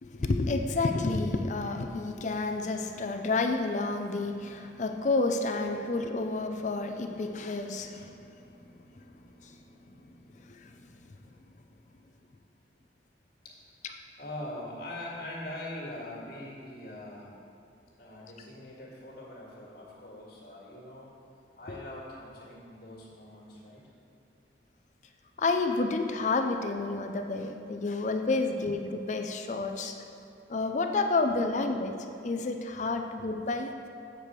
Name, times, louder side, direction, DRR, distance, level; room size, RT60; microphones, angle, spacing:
voice 1, 0.0-11.0 21.7-21.8 25.4-29.9 30.5-32.0 32.2-33.7, left 3 dB, 40° left, 5 dB, 0.5 m, -30 dB
voice 2, 14.2-17.4 18.0-21.1 21.6-23.8, left 1 dB, 60° left, -4 dB, 1.9 m, -42 dB
7.4 x 4.9 x 6.6 m, 2.6 s
head